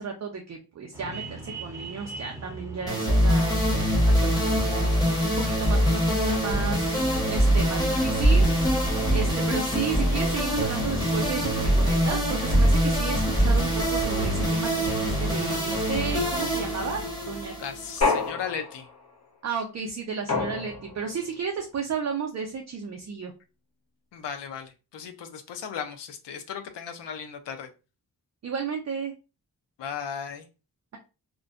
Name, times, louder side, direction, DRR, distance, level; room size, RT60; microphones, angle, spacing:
voice 1, 0.0-4.9 5.3-8.5 9.1-17.5 18.0-18.1 19.4-23.3 28.4-29.1, right 5 dB, 40° right, 0.5 m, -33 dB
sound 1, 0.9-6.2, right 2 dB, 5° right, 0.7 m, -41 dB
sound 2, 2.9-18.3, equal, 10° left, 1.1 m, -23 dB
voice 2, 17.6-18.9 24.1-27.7 29.8-30.5, left 7 dB, 85° left, 0.6 m, -36 dB
sound 3, 18.0-19.0 20.3-21.1, left 4 dB, 40° left, 0.9 m, -28 dB
2.5 x 2.1 x 2.4 m
cardioid pair, 75°, 41 cm